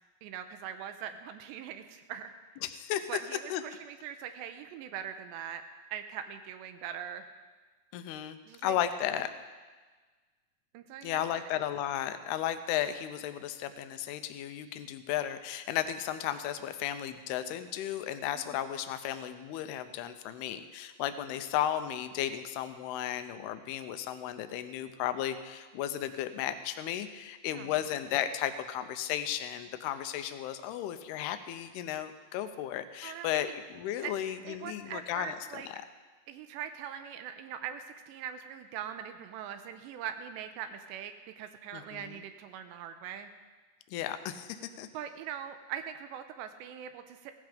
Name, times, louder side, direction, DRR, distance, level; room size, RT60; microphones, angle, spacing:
voice 1, 0.2-2.3 3.1-5.6 5.9-7.3 8.5-8.8 10.7-11.5 18.4-18.6 27.5-27.7 33.0-33.5 34.0-34.1 34.4-35.7 36.3-43.3 44.9-47.3, right 9 dB, 85° right, 8 dB, 2.9 m, -41 dB
voice 2, 2.6-3.1 3.5-3.6 7.9-9.3 11.0-35.8 41.7-42.2 43.9-44.9, left 11 dB, 75° left, 10 dB, 2.6 m, -34 dB
16.5 x 14.0 x 5.2 m, 1.4 s
omnidirectional pair, 5.1 m